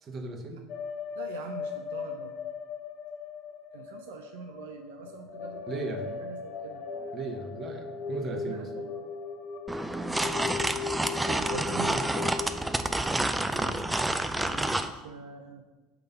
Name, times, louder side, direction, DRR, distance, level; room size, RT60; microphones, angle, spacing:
voice 1, 0.0-0.6 5.7-6.2 7.1-8.7 13.5-13.8, right 2 dB, 40° right, 5 dB, 1.0 m, -37 dB
sound 1, 0.7-12.5, left 6 dB, 60° left, 0.6 m, -38 dB
voice 2, 1.2-2.4 3.7-6.9 8.3-9.1 11.2-12.0 14.3-15.6, right 5 dB, 75° right, 5 dB, 0.4 m, -43 dB
sound 2, 9.7-14.9, right 1 dB, 10° right, 0.4 m, -29 dB
5.8 x 3.4 x 5.4 m, 1.2 s
hypercardioid pair, 75°, 0 cm